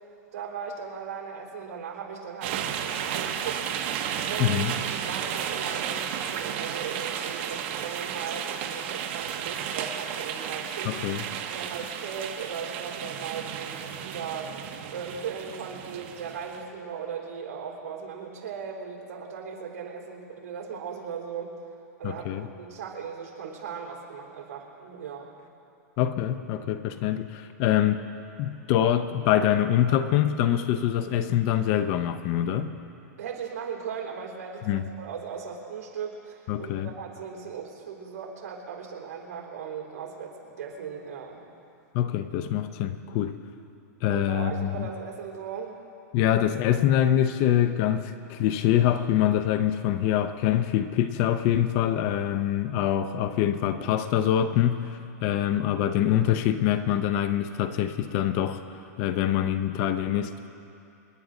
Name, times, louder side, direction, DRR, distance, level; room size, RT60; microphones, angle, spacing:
voice 1, 0.3-3.8 4.3-11.0 11.5-21.5 22.0-22.3 22.6-25.3 33.2-41.5 44.1-45.8, right 6 dB, 60° right, -1 dB, 3.8 m, -38 dB
sound 1, 2.4-16.6, right 9 dB, 40° right, 1.1 m, -33 dB
voice 2, 4.4-4.7 10.8-11.2 22.0-22.5 26.0-28.0 28.4-32.7 34.7-34.8 36.5-36.9 41.9-43.4 44.0-44.9 46.1-60.5, left 11 dB, 30° left, 11 dB, 0.5 m, -25 dB
28.0 x 10.5 x 3.9 m, 2.7 s
supercardioid pair, 160°, 9 cm